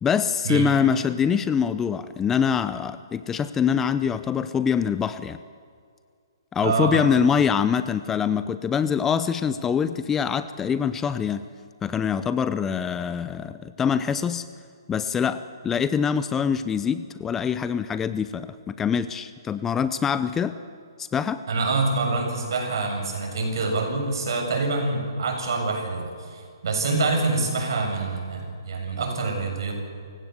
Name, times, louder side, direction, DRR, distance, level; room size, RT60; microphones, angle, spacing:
voice 1, 0.0-5.4 6.5-11.4 11.8-14.4 14.9-20.5 21.1-21.4, left 7 dB, 10° left, 13 dB, 0.6 m, -24 dB
voice 2, 6.6-7.1 21.5-29.7, right 3 dB, 65° right, 3 dB, 7.1 m, -26 dB
28.0 x 16.5 x 8.0 m, 2.3 s
hypercardioid pair, 150°, 2 cm